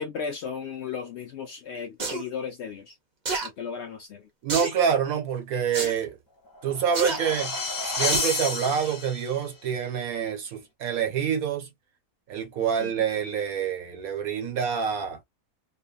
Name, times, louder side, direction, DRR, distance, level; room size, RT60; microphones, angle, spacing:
voice 1, 0.0-2.9 3.4-4.2 12.8-12.9, left 6 dB, 65° left, 0.7 m, -35 dB
sound 1, 2.0-2.2 3.2-3.5 4.5-4.8 5.7-5.9 6.9-7.2 8.1-8.4 8.9-9.0, right 3 dB, 35° right, 0.8 m, -29 dB
voice 2, 4.4-6.2 6.6-7.6 7.8-11.7 12.3-15.2, right 7 dB, 75° right, 1.4 m, -27 dB
sound 2, 6.5-9.4, left 3 dB, 20° left, 0.5 m, -30 dB
3.0 x 2.1 x 2.3 m
omnidirectional pair, 1.6 m